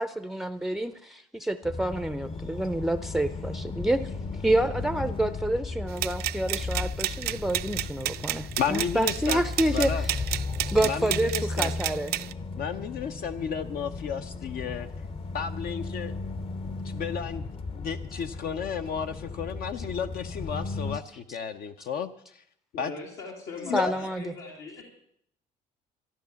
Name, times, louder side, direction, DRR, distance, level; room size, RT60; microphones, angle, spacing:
voice 1, 0.0-10.2 10.7-12.1 21.3-21.4 23.7-24.2, right 1 dB, ahead, 12 dB, 0.5 m, -28 dB
sound 1, 1.6-21.0, left 3 dB, 35° left, 0.8 m, -35 dB
sound 2, 6.0-12.3, right 14 dB, 70° right, 0.5 m, -31 dB
voice 2, 8.6-9.4 9.7-10.0 10.8-11.7 12.6-14.9 15.3-16.1 16.6-17.5 17.7-22.4 22.8-22.9 23.6-23.9, left 7 dB, 60° left, 7 dB, 0.8 m, -33 dB
voice 3, 22.7-24.8, left 3 dB, 80° left, -2 dB, 3.1 m, -41 dB
14.0 x 11.0 x 7.0 m, 0.70 s
cardioid pair, 110°, 17 cm